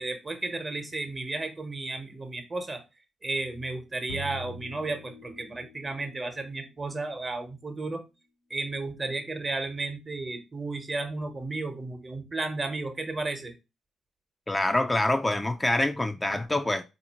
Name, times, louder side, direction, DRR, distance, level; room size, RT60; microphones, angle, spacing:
voice 1, 0.0-2.8 3.2-8.0 8.5-13.5, right 3 dB, 35° right, 1.0 m, -33 dB
sound 1, 4.1-5.9, equal, 85° left, 0.5 m, -42 dB
voice 2, 14.5-16.8, left 1 dB, 20° left, 0.4 m, -26 dB
4.1 x 2.6 x 2.8 m
hypercardioid pair, 40°, 0 cm